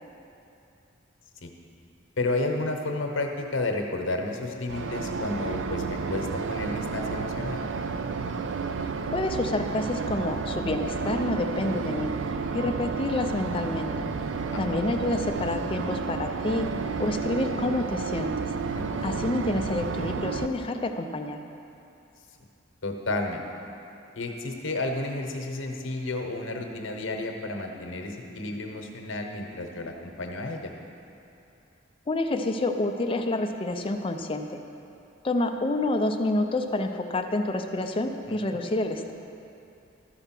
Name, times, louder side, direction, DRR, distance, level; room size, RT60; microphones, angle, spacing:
voice 1, 2.2-7.6 14.5-14.8 18.7-19.0 22.8-23.5 24.1-30.7 38.3-38.4, left 2 dB, 85° left, 3 dB, 1.0 m, -31 dB
sound 1, 4.7-20.5, right 5 dB, 75° right, 0.4 m, -31 dB
voice 2, 9.1-12.1 12.5-14.1 14.6-16.7 17.0-18.5 19.0-21.4 32.1-34.6 35.2-39.1, left 2 dB, 30° left, 5 dB, 0.5 m, -28 dB
13.0 x 4.5 x 5.9 m, 2.8 s
head